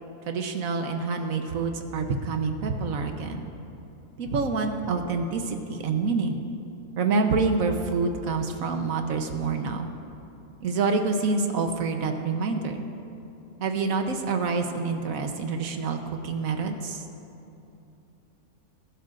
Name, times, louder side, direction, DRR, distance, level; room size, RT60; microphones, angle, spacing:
voice 1, 0.3-3.5 4.2-6.4 7.0-9.9 10.6-12.8 13.6-16.0 16.2-17.0, right 4 dB, 65° right, 5 dB, 1.2 m, -27 dB
22.0 x 11.5 x 2.5 m, 2.9 s
omnidirectional pair, 1.6 m